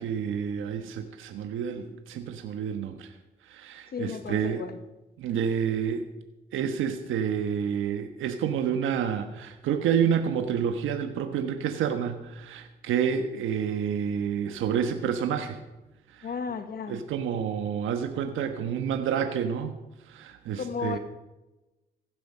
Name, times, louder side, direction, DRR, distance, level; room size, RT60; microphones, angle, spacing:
voice 1, 0.0-3.1 3.4-4.6 5.2-6.1 6.5-15.6 16.1-16.3 16.9-19.7 20.0-21.0, right 8 dB, 85° right, 6 dB, 1.2 m, -29 dB
voice 2, 3.9-4.8 16.2-17.0 20.6-21.0, left 5 dB, 50° left, 9 dB, 1.1 m, -34 dB
16.0 x 11.0 x 5.6 m, 1.1 s
cardioid pair, 90°, 20 cm